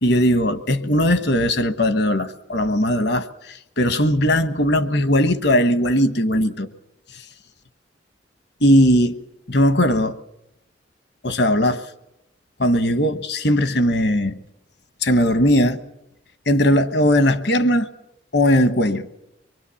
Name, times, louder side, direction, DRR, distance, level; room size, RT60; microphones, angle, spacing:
voice 1, 0.0-3.3 3.8-6.7 8.6-9.2 9.5-10.2 11.2-11.8 12.6-14.3 15.0-15.8 16.5-17.9 18.3-19.1, equal, 60° left, 1.3 m, -18 dB
25.0 x 22.5 x 7.1 m
head